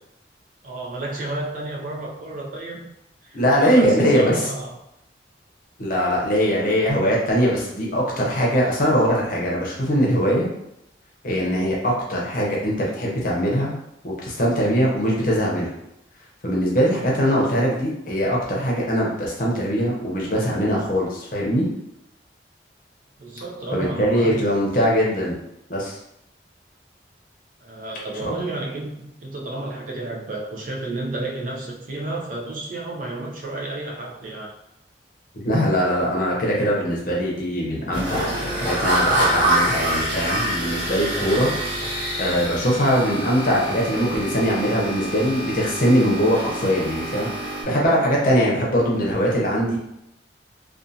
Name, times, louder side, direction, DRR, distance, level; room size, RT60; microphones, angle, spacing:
voice 1, 0.6-2.9 3.2-4.8 23.2-24.4 27.6-34.5, right 2 dB, 45° right, -1 dB, 0.4 m, -31 dB
voice 2, 3.3-4.4 5.8-10.5 11.2-13.7 14.0-15.7 16.4-21.7 23.7-25.4 25.7-26.0 28.2-28.3 35.3-41.5 42.2-49.8, equal, 45° left, -3 dB, 0.7 m, -21 dB
sound 1, 37.9-47.6, right 1 dB, 30° right, 1.1 m, -26 dB
2.4 x 2.4 x 2.7 m, 0.82 s
head